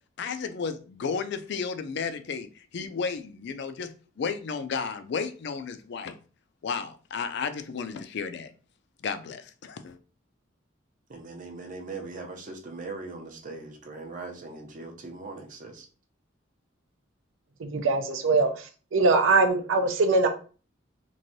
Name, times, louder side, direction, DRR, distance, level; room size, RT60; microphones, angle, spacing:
voice 1, 0.2-6.1 6.6-8.5 9.0-10.0, left 5 dB, 60° left, 0.4 m, -33 dB
voice 2, 11.1-15.9, right 3 dB, 40° right, 0.6 m, -40 dB
voice 3, 17.6-18.5 18.9-20.3, right 3 dB, 85° right, 0.6 m, -22 dB
3.2 x 2.5 x 2.6 m
head